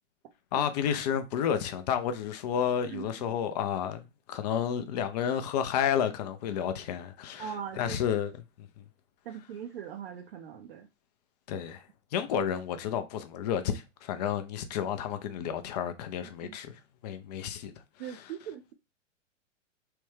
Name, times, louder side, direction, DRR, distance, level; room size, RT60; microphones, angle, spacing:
voice 1, 0.5-8.3 8.6-8.8 11.5-11.8 12.1-17.7, left 8 dB, 35° left, 0.4 m, -31 dB
voice 2, 7.4-8.0 9.2-10.9 16.4-16.6 18.0-18.7, right 8 dB, 55° right, 0.5 m, -40 dB
3.2 x 2.2 x 3.2 m
figure-of-eight pair, 110°, 37 cm